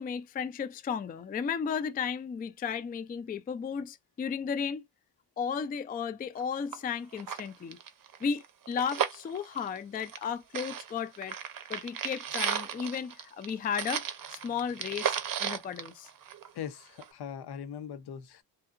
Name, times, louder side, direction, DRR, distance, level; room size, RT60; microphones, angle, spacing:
voice 1, 0.0-4.8 5.4-7.8 8.2-11.4 11.7-14.0 14.3-16.1, left 6 dB, 25° left, 0.3 m, -34 dB
sound 1, 6.4-6.5 6.7-6.8 7.1-10.3 10.5-16.6 17.0-17.1, right 8 dB, 50° right, 0.6 m, -35 dB
voice 2, 16.5-18.4, left 8 dB, 65° left, 0.6 m, -40 dB
2.8 x 2.0 x 2.4 m
cardioid pair, 60°, 42 cm